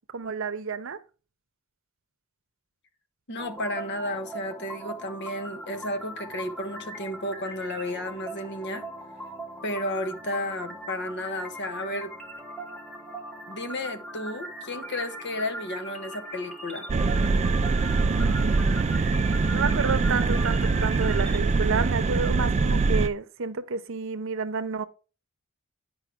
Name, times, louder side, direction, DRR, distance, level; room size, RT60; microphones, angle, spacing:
voice 1, 0.1-1.0 18.0-18.8 19.5-24.8, right 5 dB, 65° right, 0.7 m, -30 dB
voice 2, 3.3-8.8 9.6-12.1 13.5-16.9, left 1 dB, 55° left, 1.1 m, -33 dB
sound 1, 3.4-21.4, right 1 dB, 5° left, 1.2 m, -40 dB
sound 2, 16.9-23.1, right 4 dB, 30° right, 0.3 m, -23 dB
9.8 x 5.4 x 3.6 m
head